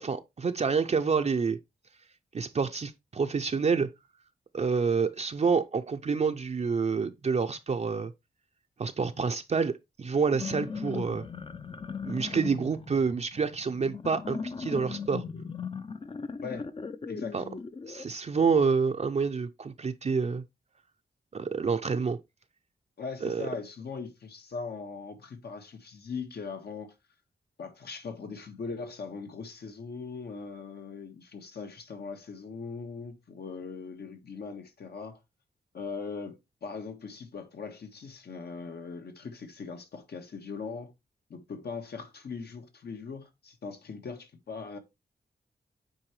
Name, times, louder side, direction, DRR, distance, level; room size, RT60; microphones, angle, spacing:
voice 1, 0.0-1.6 2.3-3.9 4.5-8.1 8.8-11.2 12.0-15.2 17.3-17.4 17.9-20.4 21.3-22.2 23.2-23.5, right 5 dB, 40° right, 0.5 m, -28 dB
sound 1, 10.2-18.0, left 5 dB, 30° left, 0.5 m, -38 dB
voice 2, 23.0-26.9 27.6-35.2 35.7-40.9 41.3-44.8, left 5 dB, 75° left, 1.5 m, -40 dB
8.8 x 4.6 x 3.1 m
wide cardioid pair, 105°, 17 cm